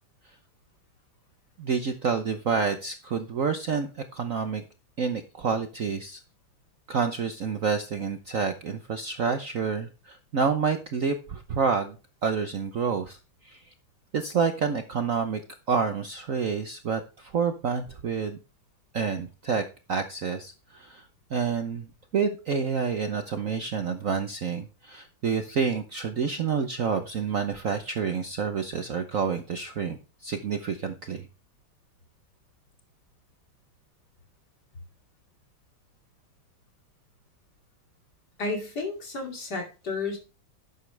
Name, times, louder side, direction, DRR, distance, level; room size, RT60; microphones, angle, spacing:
voice 1, 1.6-4.6 5.0-6.2 6.9-12.0 12.2-13.2 13.4-13.7 14.1-15.4 15.7-18.4 18.9-31.3, right 5 dB, 55° right, 7 dB, 1.0 m, -28 dB
voice 2, 38.4-40.2, left 3 dB, 50° left, 2 dB, 3.1 m, -32 dB
11.5 x 8.3 x 3.3 m, 0.33 s
omnidirectional pair, 2.2 m